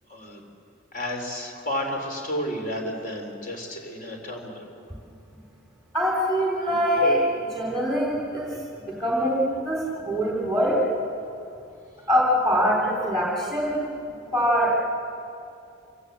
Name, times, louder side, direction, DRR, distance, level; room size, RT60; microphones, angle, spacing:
voice 1, 0.1-0.4 0.9-4.7, equal, 40° left, 2 dB, 3.5 m, -32 dB
voice 2, 5.9-8.6 8.9-10.8 12.1-13.9 14.3-14.8, equal, ahead, -4 dB, 3.2 m, -23 dB
26.0 x 16.5 x 8.0 m, 2.5 s
head